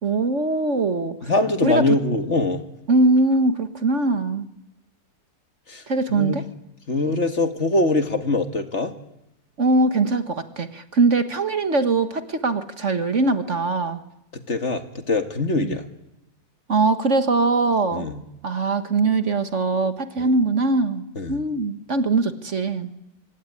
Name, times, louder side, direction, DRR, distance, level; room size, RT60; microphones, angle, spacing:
voice 1, 0.0-1.3 1.6-1.8 2.9-4.5 5.9-6.4 9.6-14.0 15.6-15.8 16.7-18.1 18.4-21.0 21.3-22.9, right 3 dB, 45° right, 10 dB, 1.7 m, -21 dB
voice 2, 1.2-2.6 5.7-5.8 6.1-6.4 6.9-8.9 14.5-15.8 17.9-18.2 20.2-20.3 21.2-21.4, left 2 dB, 45° left, 8 dB, 2.1 m, -23 dB
25.5 x 21.5 x 9.8 m, 0.86 s
omnidirectional pair, 1.8 m